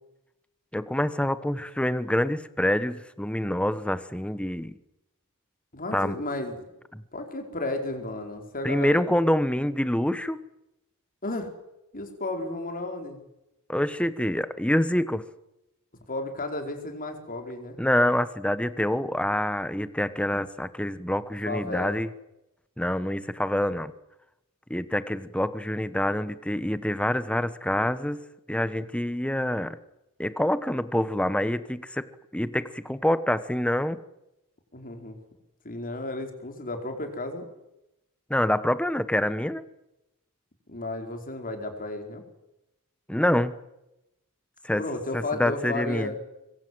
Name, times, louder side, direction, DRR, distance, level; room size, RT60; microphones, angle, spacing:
voice 1, 0.7-4.8 5.9-6.2 6.9-7.0 8.6-10.4 13.7-15.2 17.8-22.1 22.8-23.9 24.7-28.2 28.5-29.8 30.2-32.1 32.3-34.0 38.3-39.6 43.1-43.6 44.6-44.8 45.1-46.1, left 1 dB, 5° left, 13 dB, 1.1 m, -26 dB
voice 2, 5.7-6.6 7.1-9.0 11.2-11.5 11.9-13.2 16.1-17.8 21.4-22.0 34.7-35.2 35.6-37.5 40.7-42.2 44.8-46.2, left 2 dB, 40° left, 5 dB, 4.8 m, -33 dB
25.0 x 23.0 x 7.8 m, 0.89 s
head